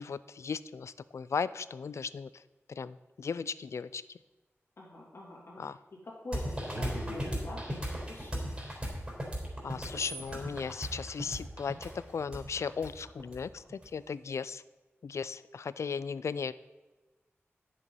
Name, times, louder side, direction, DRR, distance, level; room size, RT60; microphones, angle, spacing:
voice 1, 0.0-2.4 2.7-4.0 5.6-5.8 9.6-14.6 15.0-16.5, left 5 dB, 80° left, 17 dB, 0.3 m, -36 dB
voice 2, 4.8-5.8 6.0-8.4, left 1 dB, 60° left, -5 dB, 2.8 m, -46 dB
sound 1, 6.3-13.9, equal, 25° right, 3.7 m, -37 dB
10.0 x 6.8 x 5.4 m, 1.2 s
wide cardioid pair, 95°, 5 cm